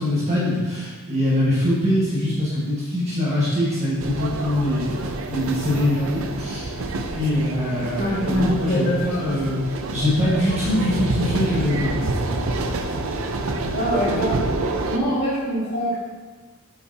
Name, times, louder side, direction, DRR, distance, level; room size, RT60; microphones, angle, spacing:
voice 1, 0.0-6.7 7.1-12.2, left 1 dB, 30° right, -8 dB, 1.7 m, -23 dB
sound 1, 4.0-15.0, right 2 dB, 65° right, 0.6 m, -28 dB
voice 2, 8.0-9.2 13.7-14.5 14.9-16.0, equal, 45° left, -7 dB, 2.1 m, -24 dB
8.1 x 5.6 x 2.9 m, 1.4 s
head